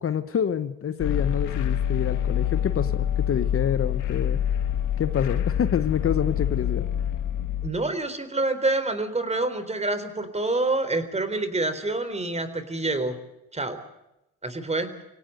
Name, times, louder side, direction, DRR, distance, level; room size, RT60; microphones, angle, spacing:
voice 1, 0.0-4.4 5.0-6.9, left 8 dB, 45° left, 12 dB, 1.1 m, -27 dB
sound 1, 1.0-7.7, left 10 dB, 85° left, 2.4 m, -26 dB
voice 2, 7.6-13.2 13.5-13.8 14.4-14.9, right 2 dB, 20° right, 11 dB, 3.8 m, -27 dB
24.0 x 17.5 x 8.0 m, 0.88 s
cardioid pair, 90°, 30 cm